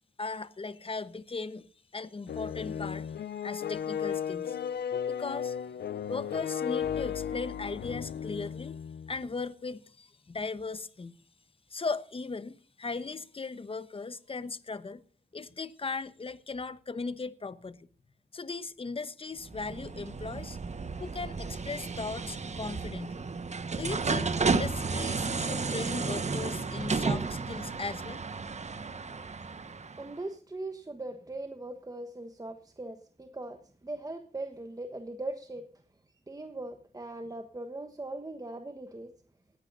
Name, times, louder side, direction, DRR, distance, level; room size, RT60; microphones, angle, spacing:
voice 1, 0.2-1.7 1.9-3.1 3.4-4.6 5.1-5.8 6.1-8.8 9.1-11.2 11.7-15.0 15.3-17.8 18.3-20.6 21.0-23.2 23.7-28.2, left 4 dB, 35° left, 1.0 m, -38 dB
sound 1, 2.3-9.2, left 8 dB, 85° left, 0.5 m, -35 dB
sound 2, 19.4-30.2, right 4 dB, 45° right, 1.3 m, -33 dB
voice 2, 29.4-33.6 33.8-35.6 36.3-39.1, right 2 dB, 20° right, 1.3 m, -40 dB
19.0 x 14.5 x 2.6 m
wide cardioid pair, 115°, 17 cm